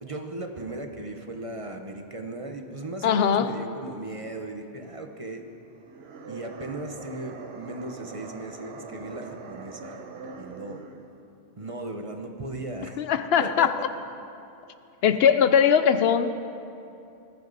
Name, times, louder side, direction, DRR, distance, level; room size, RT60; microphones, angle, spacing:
voice 1, 0.0-5.4 6.3-10.0 10.4-10.8 11.6-13.0 13.4-13.7, right 2 dB, 35° right, 4 dB, 1.0 m, -37 dB
voice 2, 3.0-3.5 13.0-13.8 15.0-16.3, left 8 dB, 75° left, 11 dB, 0.9 m, -20 dB
sound 1, 5.8-11.1, right 4 dB, 75° right, 1.1 m, -42 dB
19.5 x 14.0 x 4.0 m, 2.7 s
omnidirectional pair, 1.1 m